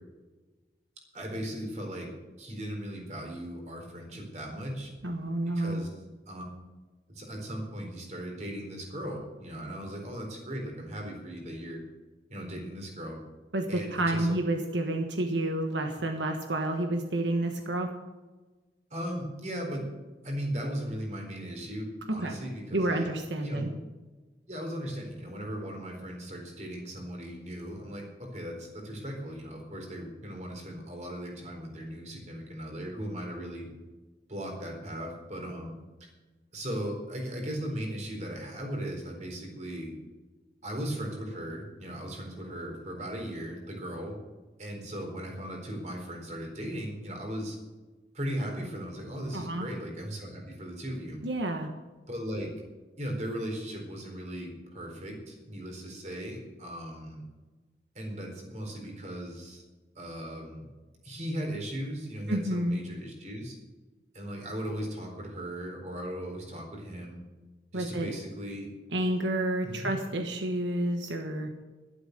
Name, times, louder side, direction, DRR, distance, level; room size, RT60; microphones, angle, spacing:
voice 1, 1.1-2.1 2.4-4.9 5.5-6.0 6.3-6.4 7.1-11.8 12.3-13.2 13.7-14.3 18.9-19.8 20.2-23.1 23.4-23.7 24.5-33.7 34.3-35.7 36.0-36.1 36.5-39.9 40.6-44.2 44.6-47.6 48.1-51.2 52.1-52.5 53.0-57.2 57.9-59.6 60.0-60.7 61.0-63.6 64.1-67.2 67.7-68.7 69.6-69.9, equal, 40° right, 1 dB, 4.2 m, -37 dB
voice 2, 5.0-5.8 13.5-17.9 22.1-22.3 22.7-23.7 49.3-49.7 51.2-51.7 62.3-62.8 67.7-68.1 68.9-71.5, right 1 dB, 85° right, 4 dB, 1.5 m, -29 dB
12.5 x 11.5 x 6.8 m, 1.2 s
head